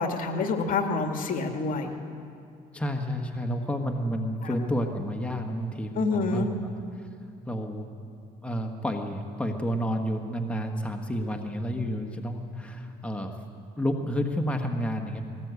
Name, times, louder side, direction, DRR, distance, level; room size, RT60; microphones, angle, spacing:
voice 1, 0.0-2.0 6.0-6.5, left 4 dB, 55° left, 4 dB, 2.2 m, -27 dB
voice 2, 2.7-7.1 7.5-7.9 8.4-13.3 13.8-15.3, equal, 5° left, 3 dB, 1.6 m, -30 dB
20.5 x 19.0 x 8.3 m, 2.4 s
cardioid pair, 110°, 17 cm